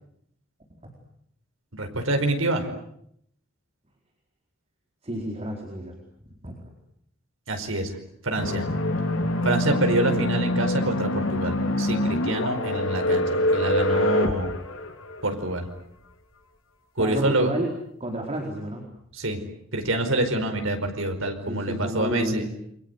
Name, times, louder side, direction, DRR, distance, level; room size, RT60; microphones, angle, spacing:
voice 1, 1.7-2.7 7.5-7.9 8.2-8.6 9.4-14.5 15.2-15.7 17.0-17.5 19.2-19.4 19.7-22.4, right 1 dB, 85° right, 5 dB, 4.9 m, -26 dB
voice 2, 5.0-6.0 6.2-6.6 17.0-17.7 18.0-18.8 21.5-22.5, right 1 dB, 30° right, 1 dB, 4.4 m, -30 dB
sound 1, 8.4-15.5, left 1 dB, 90° left, 3.3 m, -25 dB
29.0 x 24.5 x 8.1 m, 0.70 s
head